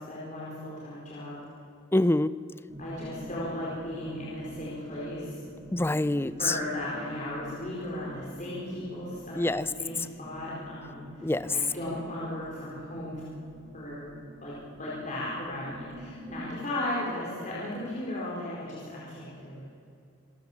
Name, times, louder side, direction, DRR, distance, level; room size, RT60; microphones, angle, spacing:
voice 1, 0.0-1.4 2.8-5.4 6.4-13.2 13.7-14.1 14.4-19.6, left 1 dB, 35° left, -7 dB, 4.6 m, -36 dB
voice 2, 1.9-2.3 5.7-6.6 9.4-9.7 11.2-11.6, left 1 dB, 10° left, 16 dB, 0.4 m, -25 dB
sound 1, 2.7-16.5, equal, 20° right, 3.6 m, -46 dB
26.5 x 14.0 x 7.4 m, 2.6 s
head